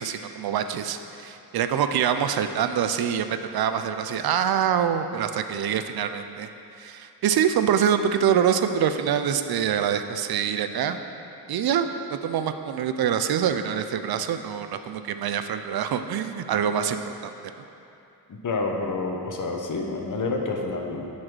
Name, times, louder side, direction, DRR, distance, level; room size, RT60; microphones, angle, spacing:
voice 1, 0.0-6.5 6.8-11.0 11.5-17.3, right 8 dB, 75° right, 9 dB, 0.5 m, -25 dB
voice 2, 18.4-21.1, left 3 dB, 55° left, 2 dB, 0.9 m, -28 dB
7.5 x 4.2 x 6.2 m, 2.7 s
wide cardioid pair, 100°, 38 cm